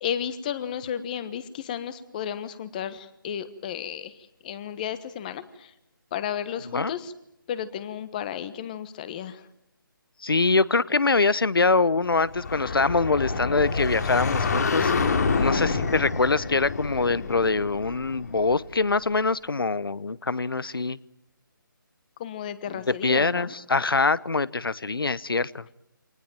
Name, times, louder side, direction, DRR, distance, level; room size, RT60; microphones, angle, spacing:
voice 1, 0.0-4.1 4.4-5.4 6.1-7.1 7.5-9.4 22.2-23.5, left 9 dB, 20° left, 14 dB, 1.3 m, -33 dB
voice 2, 6.6-6.9 10.2-14.9 15.4-21.0 22.7-25.6, left 3 dB, 85° left, 20 dB, 1.0 m, -24 dB
sound 1, 12.2-18.8, left 4 dB, 50° left, 2.7 m, -27 dB
25.5 x 19.5 x 9.0 m, 0.83 s
figure-of-eight pair, 160°, 12 cm